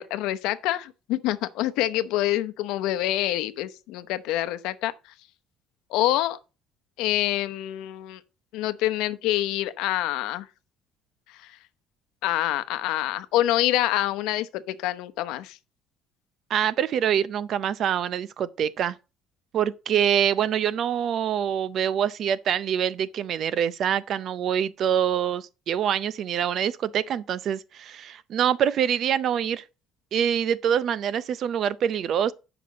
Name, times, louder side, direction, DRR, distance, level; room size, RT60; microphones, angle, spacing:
voice 1, 0.0-4.9 5.9-6.4 7.0-8.2 8.5-10.5 12.2-15.6, left 14 dB, 85° left, 0.8 m, -26 dB
voice 2, 16.5-19.0 19.5-29.6 30.1-32.3, right 9 dB, 45° right, 0.5 m, -25 dB
9.3 x 6.0 x 5.1 m
cardioid pair, 165°, 0 cm